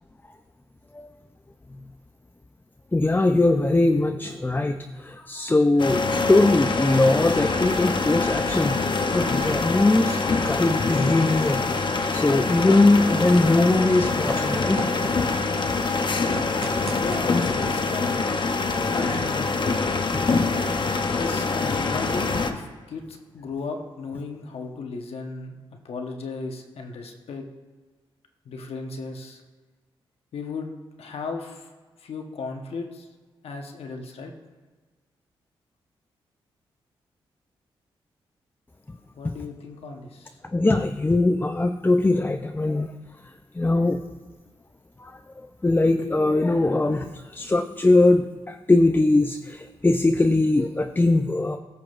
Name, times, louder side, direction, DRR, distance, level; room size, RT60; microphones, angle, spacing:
voice 1, 2.9-6.0 6.3-8.8 9.1-11.6 12.1-14.9 39.2-39.3 40.5-42.9 43.5-44.0 45.0-45.1 45.6-51.6, left 2 dB, 20° left, 6 dB, 0.6 m, -21 dB
sound 1, 5.8-22.5, left 3 dB, 50° left, 0.8 m, -25 dB
sound 2, 14.0-22.7, right 2 dB, 70° right, 1.9 m, -42 dB
voice 2, 17.0-18.2 19.0-19.5 21.1-25.5 25.8-27.4 28.4-29.4 30.3-30.7 31.0-31.7 32.0-33.1 33.4-34.3 39.2-40.4, left 4 dB, 70° left, 3 dB, 1.1 m, -35 dB
15.5 x 5.9 x 2.5 m, 1.4 s
supercardioid pair, 50°, 10 cm